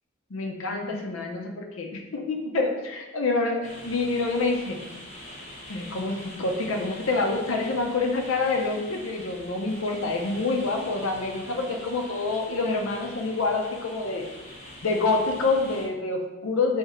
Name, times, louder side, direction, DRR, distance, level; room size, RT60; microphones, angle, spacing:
voice 1, 0.3-4.8 5.7-14.3 14.8-16.8, left 3 dB, 80° left, 2 dB, 0.6 m, -27 dB
sound 1, 3.6-15.9, equal, 35° left, 0.8 m, -44 dB
3.5 x 2.8 x 4.2 m, 1.1 s
head